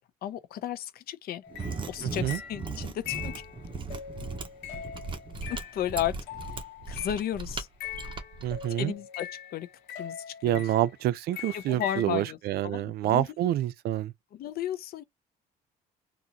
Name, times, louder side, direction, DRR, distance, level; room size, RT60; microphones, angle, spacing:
voice 1, 0.2-1.4 1.9-3.4 5.5-6.2 6.5-6.6 6.9-7.7 8.7-9.7 10.0-10.7 11.5-12.4 12.6-13.5 14.3-15.0, left 11 dB, 65° left, 0.7 m, -34 dB
sound 1, 1.4-7.4 7.8-11.0 11.3-12.1, left 9 dB, 90° left, 1.1 m, -42 dB
Mechanisms, 1.5-8.7, right 3 dB, 30° right, 1.1 m, -38 dB
voice 2, 2.0-2.4 8.4-8.9 10.4-14.1, right 13 dB, 70° right, 0.5 m, -27 dB
3.8 x 2.6 x 2.9 m
cardioid pair, 110°, 17 cm